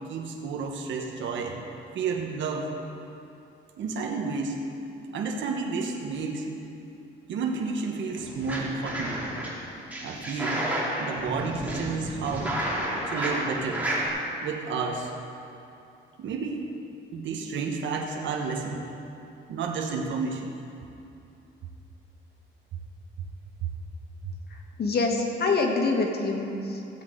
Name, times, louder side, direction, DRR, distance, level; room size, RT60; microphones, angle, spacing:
voice 1, 0.1-1.6 1.9-2.7 3.8-4.6 5.1-6.5 7.3-9.2 10.0-10.7 11.0-12.6 13.1-13.9 14.4-15.1 16.2-16.7 17.1-18.9 19.5-20.5 23.6-23.7 24.2-24.3, right 4 dB, 70° right, 1 dB, 1.3 m, -31 dB
sound 1, 8.2-9.5 9.9-14.1, right 1 dB, 10° right, 3.0 m, -31 dB
voice 2, 24.5-27.0, left 3 dB, 55° left, 1 dB, 1.7 m, -26 dB
16.0 x 7.9 x 3.9 m, 2.7 s
cardioid pair, 90°, 20 cm